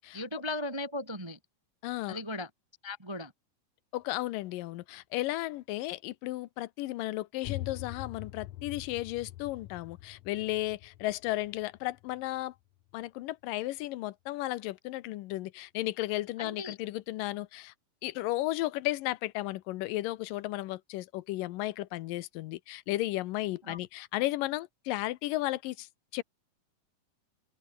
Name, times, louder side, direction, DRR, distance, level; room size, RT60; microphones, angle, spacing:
voice 1, 0.1-1.4 2.1-2.5 2.8-3.3 16.4-16.8 23.7-23.8, left 2 dB, 20° right, 0.7 m, -37 dB
voice 2, 1.8-2.2 3.9-12.5 12.9-17.7 18.0-25.9 26.1-26.2, left 17 dB, 90° left, 2.5 m, -34 dB
sound 1, 7.4-13.0, left 15 dB, 70° left, 1.7 m, -44 dB
open air
omnidirectional pair, 3.8 m